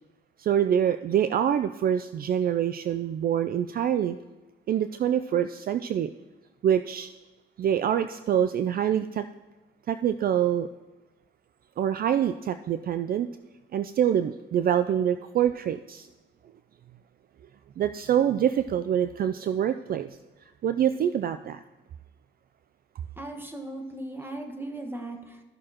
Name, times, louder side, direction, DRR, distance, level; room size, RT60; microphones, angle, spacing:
voice 1, 0.4-4.2 4.7-6.1 6.6-7.1 7.6-9.3 9.9-10.7 11.8-13.3 13.7-16.1 17.8-20.1 20.6-21.6, right 9 dB, 50° right, 11 dB, 0.4 m, -25 dB
voice 2, 23.2-25.4, right 1 dB, 10° right, 4 dB, 1.4 m, -37 dB
15.0 x 6.3 x 2.9 m, 1.2 s
cardioid pair, 90°, 20 cm